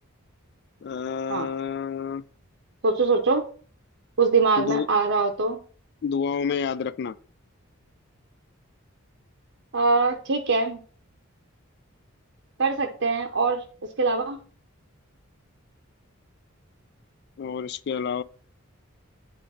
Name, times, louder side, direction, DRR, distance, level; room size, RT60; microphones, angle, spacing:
voice 1, 0.8-2.2 4.6-4.9 6.0-7.2 17.4-18.2, left 6 dB, 50° left, 0.3 m, -29 dB
voice 2, 2.8-3.4 4.2-5.6 9.7-10.8 12.6-13.6 14.0-14.4, right 4 dB, 60° right, 0.7 m, -23 dB
8.5 x 3.2 x 5.5 m
head